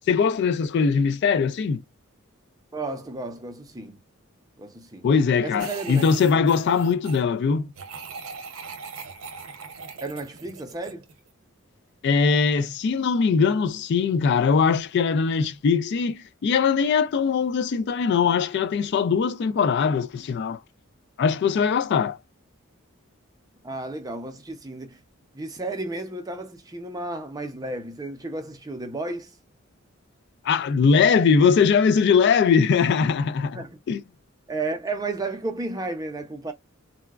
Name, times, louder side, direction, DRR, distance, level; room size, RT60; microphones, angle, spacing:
voice 1, 0.1-1.8 5.0-7.7 12.0-20.6 21.2-22.2 30.4-34.0, left 5 dB, 55° left, 0.3 m, -21 dB
voice 2, 2.7-4.0 4.6-5.1 5.4-6.1 10.0-11.1 23.6-25.0 25.3-29.3 33.5-33.8 34.5-36.5, right 2 dB, 20° right, 0.6 m, -33 dB
sound 1, 5.6-7.2 7.8-11.3, right 5 dB, 80° right, 0.7 m, -40 dB
4.0 x 2.2 x 2.3 m
head